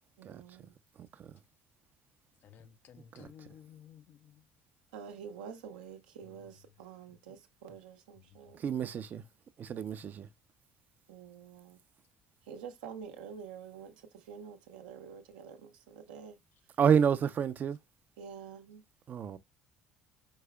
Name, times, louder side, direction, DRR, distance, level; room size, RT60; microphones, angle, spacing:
voice 1, 0.2-0.7 4.9-9.0 11.1-11.8 12.4-16.4 18.2-18.8, right 7 dB, 80° right, 0.8 m, -48 dB
voice 2, 2.4-4.5 7.3-7.4, left 9 dB, 55° left, 0.6 m, -55 dB
voice 3, 8.6-9.2 9.6-10.3 16.8-17.8 19.1-19.4, right 7 dB, 45° right, 0.5 m, -29 dB
4.8 x 4.7 x 2.2 m
hypercardioid pair, 60°, 4 cm